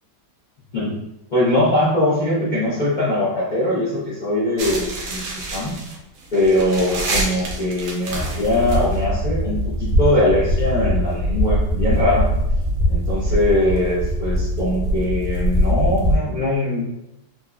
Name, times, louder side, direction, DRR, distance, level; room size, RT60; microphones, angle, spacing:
voice 1, 1.3-5.8 6.3-12.3 12.9-16.8, left 1 dB, 55° left, -10 dB, 0.5 m, -21 dB
sound 1, 4.6-16.2, equal, 65° right, 0.9 m, -22 dB
3.7 x 2.1 x 2.3 m, 0.88 s
omnidirectional pair, 1.9 m